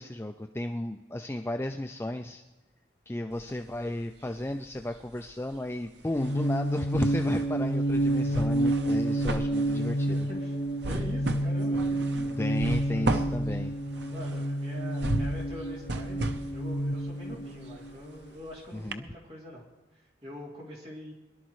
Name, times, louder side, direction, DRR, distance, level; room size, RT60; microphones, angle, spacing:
voice 1, 0.0-2.4 3.1-10.2 12.4-13.7 18.7-19.0, left 1 dB, 15° left, 5 dB, 0.4 m, -34 dB
sound 1, 3.3-4.4 4.7-18.5 18.9-19.0, right 2 dB, 85° right, 0.9 m, -36 dB
sound 2, 6.2-18.2, right 1 dB, 65° left, 1.7 m, -29 dB
voice 2, 10.1-10.6 10.8-12.3 12.6-13.4 14.1-19.6 19.9-21.1, equal, 35° right, -5 dB, 3.0 m, -44 dB
23.0 x 12.0 x 3.2 m, 1.1 s
head